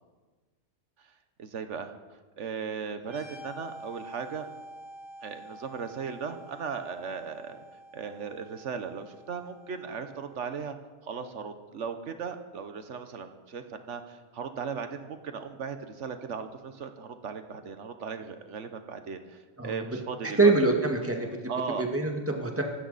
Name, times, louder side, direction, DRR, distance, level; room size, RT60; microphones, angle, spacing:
voice 1, 1.4-1.9 2.4-4.5 5.2-7.6 7.9-10.8 11.0-20.5 21.5-21.9, right 6 dB, 85° right, 8 dB, 1.4 m, -37 dB
sound 1, 3.0-10.5, equal, 25° left, 5.1 m, -48 dB
voice 2, 19.6-20.0 20.2-21.3 21.8-22.6, right 3 dB, 10° right, 2 dB, 1.8 m, -25 dB
25.0 x 13.0 x 4.1 m, 1.4 s
omnidirectional pair, 1.2 m